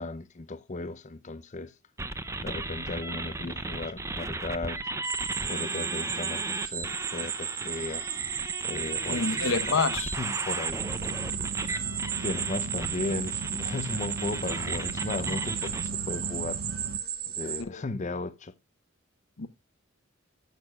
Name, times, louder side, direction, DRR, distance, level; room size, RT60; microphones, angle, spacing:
voice 1, 0.0-1.7 2.4-4.8 5.5-8.1 8.6-9.8 10.2-10.8 12.2-16.6 17.3-18.5, left 3 dB, 35° left, 0.6 m, -36 dB
sound 1, 2.0-15.9, right 2 dB, 15° right, 0.6 m, -36 dB
sound 2, 5.0-17.6, right 9 dB, 45° right, 1.3 m, -34 dB
voice 2, 9.1-10.1 17.7-17.8 19.4-19.5, left 4 dB, 75° left, 1.1 m, -27 dB
sound 3, 10.8-17.0, right 4 dB, 80° right, 0.5 m, -38 dB
11.0 x 7.9 x 2.3 m
head